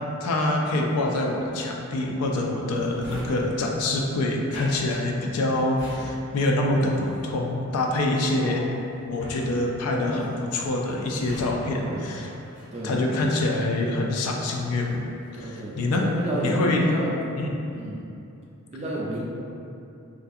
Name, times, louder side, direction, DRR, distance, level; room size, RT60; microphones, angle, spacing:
voice 1, 0.2-8.7 9.1-12.3 12.8-15.0 15.3-16.1 16.4-16.9 17.4-17.5, left 2 dB, 85° left, 1 dB, 0.4 m, -25 dB
Drawer open or close, 2.7-14.0 14.4-15.7 16.1-16.6, equal, 50° left, 1.3 m, -44 dB
voice 2, 8.4-8.8 11.8-12.1 12.7-13.2 15.3-16.6 16.8-17.2 17.8-18.0 18.7-19.2, right 1 dB, 30° right, -5 dB, 0.4 m, -32 dB
2.5 x 2.3 x 2.5 m, 2.7 s
head